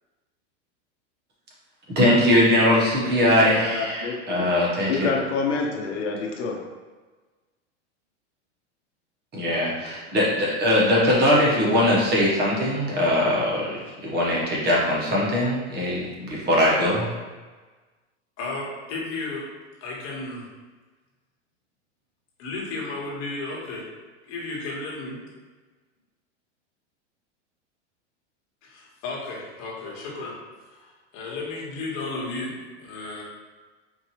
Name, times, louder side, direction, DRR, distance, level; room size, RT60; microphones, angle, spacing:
voice 1, 1.9-5.1 9.3-17.1, left 1 dB, 30° right, -4 dB, 1.1 m, -21 dB
voice 2, 3.6-4.2 4.9-6.6, left 4 dB, 75° left, 0 dB, 0.8 m, -27 dB
voice 3, 18.4-19.5 19.8-20.5 22.4-23.8 24.2-25.2 28.6-30.4 30.6-32.5 32.8-33.2, left 3 dB, 50° left, -4 dB, 1.4 m, -33 dB
4.5 x 2.6 x 3.0 m, 1.3 s
supercardioid pair, 125°, 36 cm